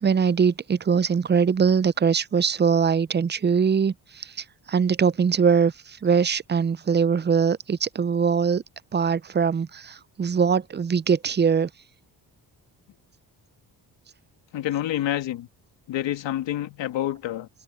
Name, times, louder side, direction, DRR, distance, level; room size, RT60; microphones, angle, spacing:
voice 1, 0.0-8.6 8.9-11.7, right 6 dB, 25° right, 0.5 m, -22 dB
voice 2, 14.5-15.5 15.9-17.5, left 12 dB, 85° left, 2.1 m, -28 dB
cardioid pair, 75°, 43 cm